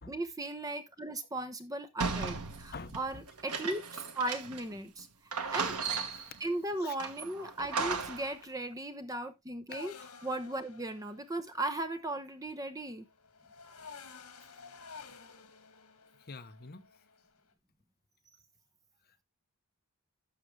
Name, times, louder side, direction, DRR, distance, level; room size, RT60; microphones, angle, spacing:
voice 1, 0.1-5.8 6.4-9.9 10.2-13.1, right 2 dB, 15° right, 0.9 m, -37 dB
sound 1, 2.0-4.7 5.0-5.1 5.3-6.4 7.0-8.3, right 4 dB, 90° right, 1.5 m, -36 dB
voice 2, 2.7-3.3 5.5-5.6 6.1-6.3 6.8-7.0 16.2-16.9, left 4 dB, 45° left, 0.9 m, -47 dB
sound 2, 9.7-17.4, left 5 dB, 80° left, 1.8 m, -52 dB
11.5 x 6.4 x 3.2 m
head